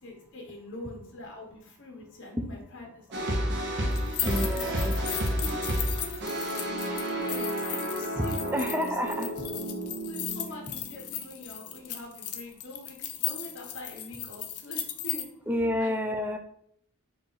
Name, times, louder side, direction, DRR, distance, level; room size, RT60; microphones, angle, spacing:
voice 1, 0.0-3.3 3.8-4.7 5.3-8.9 9.3-9.4 10.1-15.2 15.8-15.9, left 2 dB, 60° left, 0 dB, 1.3 m, -44 dB
sound 1, 3.1-11.3, equal, 55° right, 0.9 m, -31 dB
sound 2, 3.9-15.2, left 11 dB, 90° left, 0.5 m, -36 dB
voice 2, 4.2-5.0 8.2-8.3 8.5-9.3 15.5-16.4, equal, 10° right, 6 dB, 0.4 m, -29 dB
4.6 x 2.6 x 3.9 m, 0.67 s
head